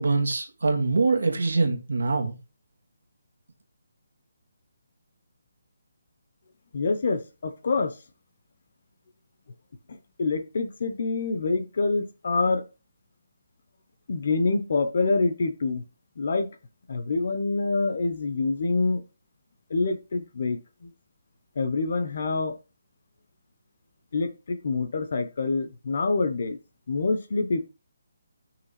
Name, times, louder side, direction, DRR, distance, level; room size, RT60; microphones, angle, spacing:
voice 1, 0.0-2.3, right 3 dB, 80° right, 1.7 m, -24 dB
voice 2, 6.7-7.9 9.9-12.6 14.1-15.8 16.2-16.5 16.9-19.0 19.7-20.9 21.6-22.6 24.1-26.6 26.9-27.7, left 3 dB, 40° left, 0.8 m, -26 dB
5.8 x 3.5 x 5.6 m
hypercardioid pair, 180°, 0 cm